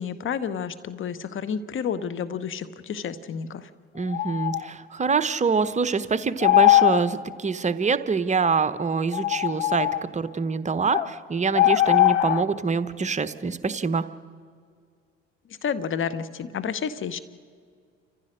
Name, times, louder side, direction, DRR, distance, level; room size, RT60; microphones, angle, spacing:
voice 1, 0.0-3.7 15.5-17.2, left 7 dB, 35° left, 14 dB, 1.1 m, -30 dB
voice 2, 3.9-9.9 10.1-14.0, right 5 dB, 20° right, 13 dB, 0.9 m, -25 dB
sound 1, 4.0-4.6 6.4-7.0 8.4-8.5 9.1-10.0 10.9-11.1 11.5-12.4, left 14 dB, 75° left, 0.8 m, -20 dB
29.0 x 15.0 x 6.4 m, 2.1 s
figure-of-eight pair, 55°, 36 cm